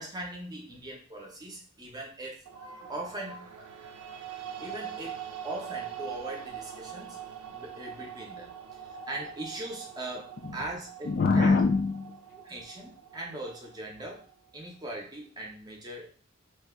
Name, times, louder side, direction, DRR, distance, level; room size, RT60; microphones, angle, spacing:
voice 1, 0.0-3.8 4.6-11.5 12.4-14.3 14.5-16.1, right 1 dB, 20° right, 0.6 m, -40 dB
sound 1, 2.5-14.7, right 9 dB, 80° right, 0.4 m, -43 dB
voice 2, 8.9-9.3 10.4-10.6 11.0-12.2, left 4 dB, 45° left, 0.3 m, -25 dB
2.6 x 2.1 x 3.6 m
head